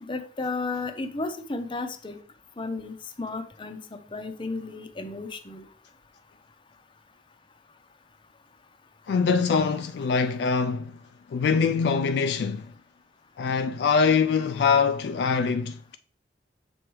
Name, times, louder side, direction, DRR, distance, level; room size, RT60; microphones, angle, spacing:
voice 1, 0.0-2.2 2.6-5.6, left 3 dB, 30° left, 0.6 m, -33 dB
voice 2, 9.1-11.0 11.3-12.7 13.4-16.0, left 5 dB, 70° left, 0.3 m, -23 dB
7.0 x 4.7 x 3.1 m
head